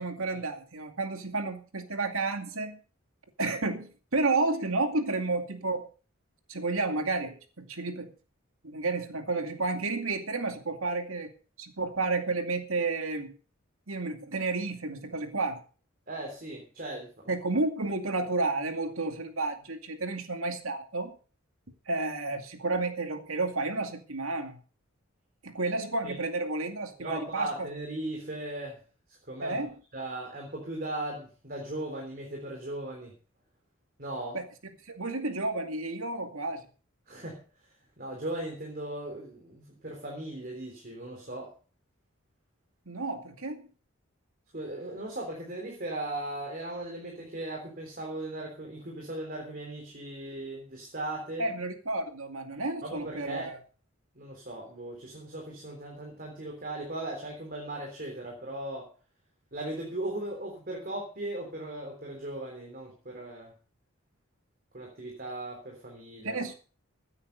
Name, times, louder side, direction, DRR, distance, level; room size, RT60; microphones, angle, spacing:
voice 1, 0.0-2.8 3.4-5.9 6.5-8.1 8.6-11.3 11.6-13.3 13.9-15.6 17.3-21.1 21.9-24.6 25.4-27.7 29.4-29.7 34.3-34.5 34.9-36.6 42.9-43.6 51.4-53.6 66.2-66.5, right 3 dB, 80° right, 6 dB, 2.3 m, -31 dB
voice 2, 16.1-17.3 26.0-26.1 27.0-28.8 29.3-29.6 29.9-33.1 34.0-34.4 37.1-37.4 38.0-41.5 44.5-51.5 52.8-53.6 54.2-58.9 59.5-63.5 64.7-66.4, right 1 dB, 40° right, 1 dB, 3.6 m, -38 dB
16.0 x 9.6 x 5.2 m, 0.38 s
head